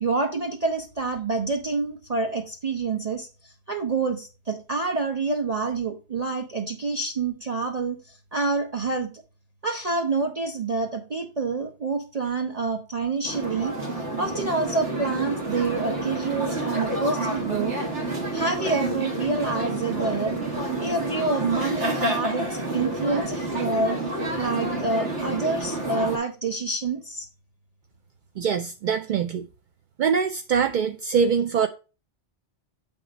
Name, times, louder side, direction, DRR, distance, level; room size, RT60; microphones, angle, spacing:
voice 1, 0.0-9.1 9.6-13.7 14.2-17.8 18.3-20.4 20.8-24.0 24.4-27.3, right 3 dB, 35° right, 0.9 m, -27 dB
sound 1, 13.2-26.2, right 1 dB, 85° right, 2.3 m, -29 dB
voice 2, 28.4-29.5 30.0-31.7, right 6 dB, 60° right, 0.5 m, -23 dB
8.2 x 3.6 x 5.1 m
omnidirectional pair, 1.2 m